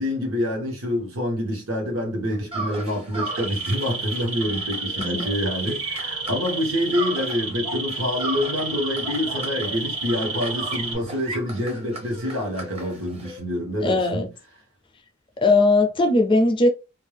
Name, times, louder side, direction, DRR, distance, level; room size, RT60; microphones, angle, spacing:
voice 1, 0.0-14.3, left 1 dB, 75° right, 1.1 m, -27 dB
sound 1, 2.5-7.6 7.9-13.4, right 2 dB, 30° right, 0.7 m, -36 dB
sound 2, 3.1-10.9, right 3 dB, 90° right, 1.4 m, -31 dB
voice 2, 13.8-14.3 15.4-16.7, left 2 dB, 25° left, 0.4 m, -19 dB
2.5 x 2.3 x 3.2 m
head